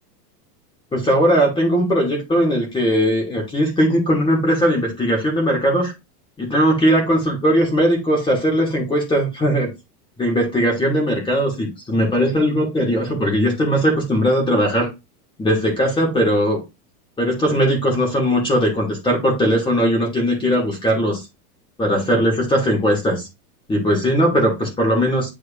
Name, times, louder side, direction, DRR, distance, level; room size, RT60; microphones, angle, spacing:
voice 1, 0.9-5.9 6.4-9.7 10.2-14.9 15.4-16.6 17.2-21.2 21.8-23.3 23.7-25.3, equal, 10° left, -1 dB, 2.4 m, -19 dB
9.5 x 4.8 x 2.6 m, 0.23 s
supercardioid pair, 155°, 47 cm